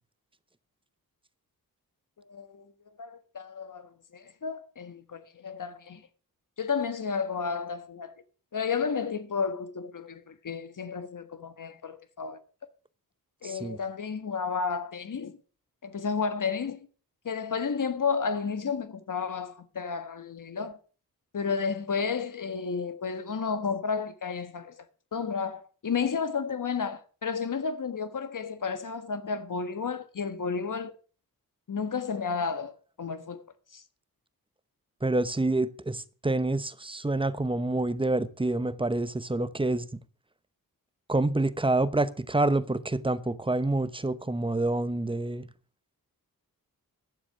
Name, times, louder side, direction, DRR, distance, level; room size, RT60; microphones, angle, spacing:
voice 1, 2.3-2.6 3.0-6.0 6.6-8.2 8.5-12.4 13.4-15.4 15.8-16.9 17.2-20.8 21.3-24.8 25.1-31.0 31.7-32.7 33.0-33.4 33.7-33.8, left 5 dB, 55° left, 1.4 m, -32 dB
voice 2, 13.4-13.8 35.0-39.9 41.1-45.5, right 2 dB, 15° right, 0.8 m, -27 dB
11.5 x 7.3 x 6.0 m
cardioid pair, 60°, 36 cm